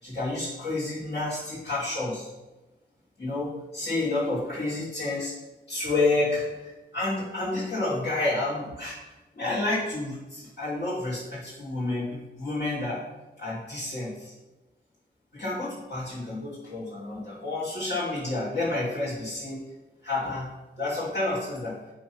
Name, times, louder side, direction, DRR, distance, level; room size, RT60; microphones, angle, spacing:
voice 1, 0.0-2.3 3.2-5.3 5.7-9.0 9.3-13.0 13.4-14.3 15.3-19.6 20.0-20.5 20.8-21.7, left 2 dB, 70° left, -11 dB, 3.0 m, -30 dB
11.5 x 3.9 x 5.7 m, 1.1 s
wide cardioid pair, 95°, 18 cm